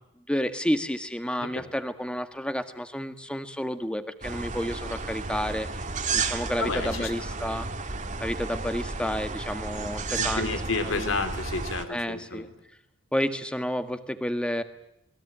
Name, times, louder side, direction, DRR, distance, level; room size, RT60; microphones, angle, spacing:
voice 1, 0.3-7.7 8.2-10.5 10.8-11.2 11.9-12.5 13.1-14.6, equal, 5° left, 9 dB, 1.7 m, -30 dB
sound 1, 4.2-11.8, right 4 dB, 40° right, 2.1 m, -32 dB
voice 2, 6.6-7.1 10.2-12.5, left 3 dB, 80° left, 9 dB, 3.7 m, -31 dB
27.5 x 21.5 x 8.9 m, 0.81 s
head